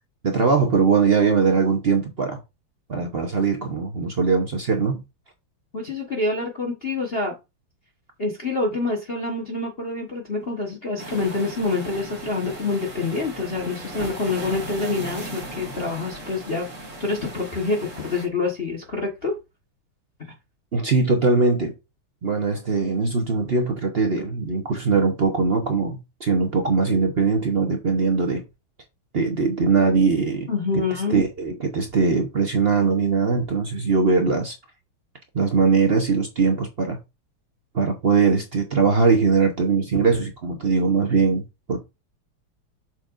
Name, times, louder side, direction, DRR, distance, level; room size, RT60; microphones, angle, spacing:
voice 1, 0.2-2.4 2.9-5.0 20.7-21.7 22.2-28.4 29.1-30.5 30.7-30.8 31.1-34.5 35.3-37.0 37.7-41.8, right 4 dB, 60° right, 0.6 m, -21 dB
voice 2, 5.7-7.3 8.2-16.6 17.0-19.3 20.2-20.3 30.5-31.2, left 3 dB, 35° left, 1.2 m, -26 dB
sound 1, 11.0-18.3, right 1 dB, 35° right, 2.2 m, -37 dB
7.4 x 5.9 x 2.5 m
omnidirectional pair, 2.4 m